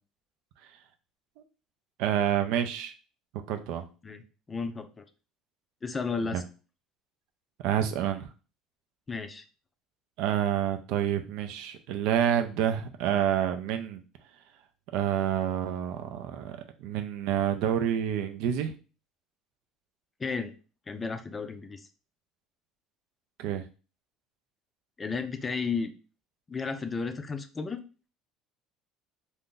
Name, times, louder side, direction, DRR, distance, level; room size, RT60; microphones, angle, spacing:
voice 1, 2.0-2.9 3.5-3.8 6.3-6.4 7.6-8.3 10.2-14.0 14.9-18.7 23.4-23.6, right 10 dB, 75° right, 7 dB, 0.4 m, -28 dB
voice 2, 4.0-5.1 5.8-6.4 9.1-9.4 20.2-20.5 20.9-21.8 25.0-25.9 26.5-27.8, left 4 dB, 20° left, 8 dB, 0.4 m, -33 dB
2.6 x 2.5 x 3.7 m, 0.34 s
cardioid pair, 120°, 0 cm